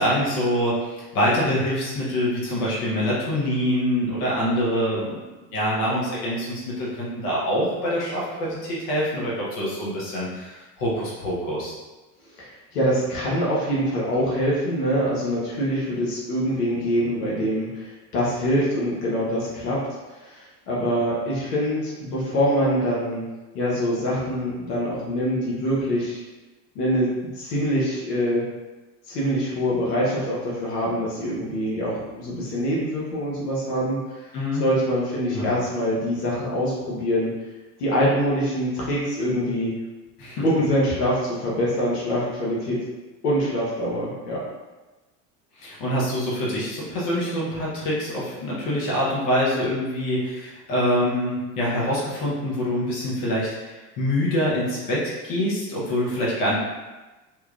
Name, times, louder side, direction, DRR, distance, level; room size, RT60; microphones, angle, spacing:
voice 1, 0.0-5.2 5.5-11.7 34.3-34.6 35.3-35.5 40.2-40.4 45.6-56.6, equal, 40° left, -6 dB, 0.9 m, -25 dB
voice 2, 12.4-23.2 23.5-26.2 26.7-27.1 27.3-28.4 29.1-34.3 34.6-37.3 37.8-39.8 40.4-42.8 43.2-44.4, equal, 70° left, -6 dB, 1.0 m, -24 dB
2.9 x 2.3 x 2.3 m, 1.2 s
figure-of-eight pair, 75°, 49 cm